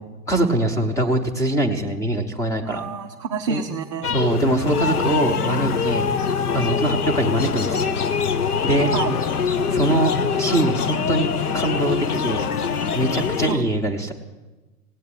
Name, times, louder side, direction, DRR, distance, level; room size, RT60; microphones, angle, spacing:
voice 1, 0.3-2.8 3.5-3.6 4.1-6.1 6.5-7.9 8.6-8.9 9.7-11.3 11.5-12.5 12.9-14.1, right 1 dB, 5° left, 4 dB, 1.1 m, -22 dB
voice 2, 2.6-4.2 8.9-9.1 13.5-13.7, right 6 dB, 20° right, 1 dB, 0.5 m, -28 dB
sound 1, 4.0-13.5, left 6 dB, 65° left, 1.0 m, -23 dB
17.5 x 9.2 x 8.6 m, 1.2 s
figure-of-eight pair, 110°, 49 cm